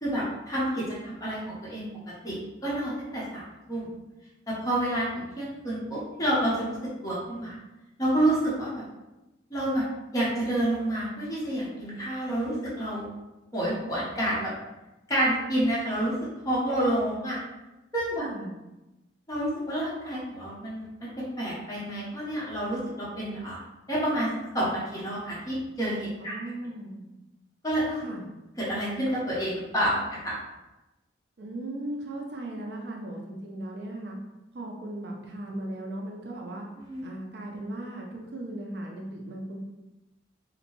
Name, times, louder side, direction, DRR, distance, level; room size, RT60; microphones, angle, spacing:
voice 1, 0.0-1.8 2.2-2.4 2.6-3.4 3.7-3.9 4.5-6.8 7.0-7.6 8.0-8.8 9.5-9.8 10.1-13.1 13.5-14.5 15.1-16.1 16.4-17.4 17.9-18.2 19.3-21.1 21.4-23.6 23.9-26.4 27.6-28.1 28.6-30.3 36.8-37.1, right 1 dB, 20° left, -8 dB, 0.8 m, -29 dB
voice 2, 18.2-18.5 26.2-27.0 28.0-28.3 31.4-34.2 34.5-36.7 37.0-39.6, right 1 dB, 55° right, 0 dB, 0.4 m, -37 dB
2.8 x 2.1 x 2.9 m, 1.0 s
head